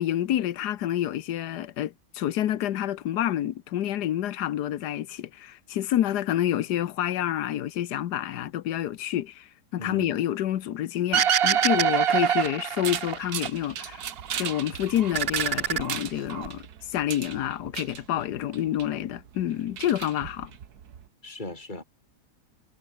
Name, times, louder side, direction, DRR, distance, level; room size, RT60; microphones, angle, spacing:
voice 1, 0.0-14.1 14.4-16.6 16.9-20.5, left 12 dB, 85° left, 1.5 m, -28 dB
voice 2, 9.8-10.2 21.2-21.8, left 2 dB, 30° left, 5.0 m, -37 dB
sound 1, 11.1-13.5 13.8-14.6 15.0-16.5, right 9 dB, 50° right, 0.8 m, -25 dB
sound 2, 12.8-21.1, right 8 dB, 70° right, 1.8 m, -38 dB
omnidirectional pair, 1.7 m